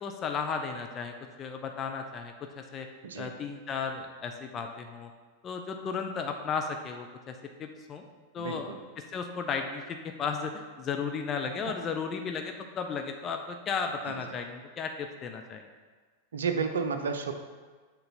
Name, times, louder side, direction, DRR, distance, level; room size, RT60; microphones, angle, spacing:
voice 1, 0.0-2.9 3.2-5.1 5.4-8.0 8.3-15.6, left 5 dB, 30° left, 5 dB, 0.5 m, -35 dB
voice 2, 8.4-8.8 11.7-11.8 14.1-14.4 16.3-17.3, right 5 dB, 65° right, 7 dB, 0.6 m, -32 dB
6.7 x 3.9 x 5.7 m, 1.5 s
figure-of-eight pair, 90°, 0 cm